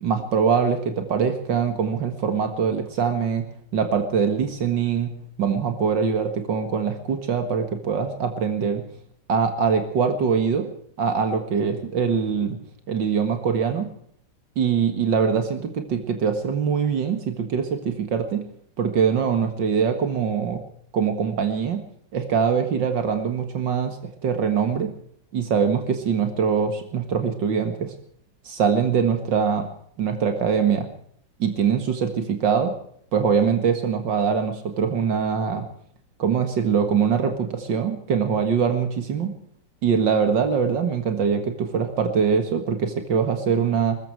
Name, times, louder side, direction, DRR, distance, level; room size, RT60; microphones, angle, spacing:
voice 1, 0.0-3.4 3.7-5.1 5.4-8.8 9.3-10.7 11.0-12.6 12.9-13.9 14.6-18.4 18.8-20.6 20.9-21.8 22.1-24.0 24.2-24.9 25.3-27.9 28.5-29.7 30.0-30.9 31.4-32.7 33.1-35.6 36.2-39.3 39.8-44.0, right 6 dB, 85° right, 6 dB, 2.4 m, -23 dB
22.0 x 14.0 x 4.6 m, 0.63 s
omnidirectional pair, 1.9 m